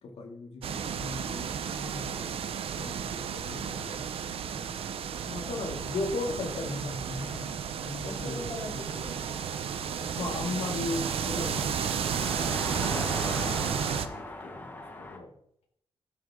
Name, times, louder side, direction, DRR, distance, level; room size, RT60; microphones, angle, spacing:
voice 1, 0.0-4.0 4.5-5.0 5.3-7.5 7.8-8.5 8.7-8.9 10.2-12.6 13.3-13.7 14.0-15.3, left 2 dB, 75° left, 2 dB, 2.7 m, -37 dB
sound 1, 0.6-14.1, right 8 dB, 70° right, 0.8 m, -33 dB
voice 2, 3.5-4.4 8.0-10.3 12.9-14.0, left 1 dB, 35° left, -4 dB, 4.6 m, -44 dB
Car passing by, 5.1-15.2, left 2 dB, 20° left, 1.5 m, -42 dB
14.5 x 7.9 x 3.8 m, 0.69 s
wide cardioid pair, 160°, 10 cm